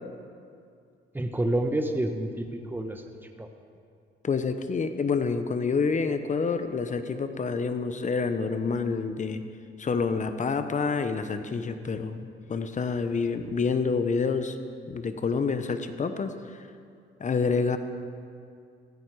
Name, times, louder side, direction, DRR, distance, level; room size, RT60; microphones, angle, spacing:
voice 1, 1.1-3.0 3.4-3.5, right 1 dB, 10° right, 5 dB, 1.1 m, -28 dB
voice 2, 4.2-9.4 9.8-14.6 14.9-16.6 17.2-17.8, left 5 dB, 40° left, 9 dB, 1.0 m, -28 dB
15.5 x 15.0 x 4.9 m, 2.3 s
cardioid pair, 90°, 20 cm